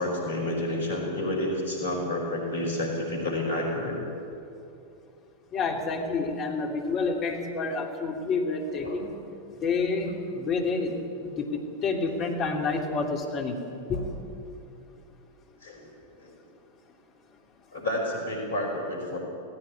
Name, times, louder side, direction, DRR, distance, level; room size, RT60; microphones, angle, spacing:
voice 1, 0.0-4.0 8.8-9.1 13.9-14.0 15.6-15.9 16.2-16.3 17.7-19.2, left 1 dB, 70° left, 0 dB, 5.3 m, -30 dB
voice 2, 5.5-9.1 9.6-13.6 13.9-14.1, left 4 dB, 35° left, 2 dB, 3.3 m, -29 dB
18.0 x 16.0 x 9.9 m, 2.6 s
figure-of-eight pair, 90°, 0 cm